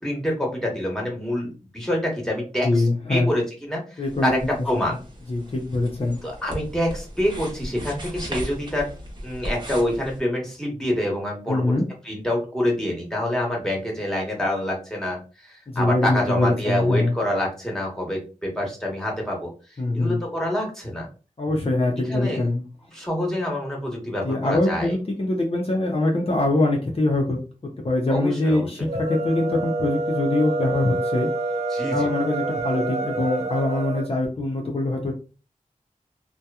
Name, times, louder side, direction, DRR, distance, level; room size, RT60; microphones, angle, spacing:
voice 1, 0.0-2.7 3.1-4.4 4.6-5.0 6.2-8.9 9.2-11.7 12.0-19.5 19.9-21.1 22.1-22.5 22.9-25.0 28.1-28.9 31.7-32.1, left 1 dB, 5° left, -1 dB, 1.1 m, -26 dB
voice 2, 2.6-3.3 4.0-4.3 5.3-6.2 11.5-11.8 15.7-17.2 19.8-20.2 21.4-22.6 24.2-27.4 27.8-31.3 31.8-35.1, left 2 dB, 45° left, 0 dB, 0.6 m, -23 dB
Lapiz y goma, 4.1-10.2, equal, 35° right, 0.9 m, -37 dB
sound 1, 28.8-34.1, right 2 dB, 55° right, 0.4 m, -27 dB
2.8 x 2.2 x 2.3 m, 0.34 s
wide cardioid pair, 70°, 14 cm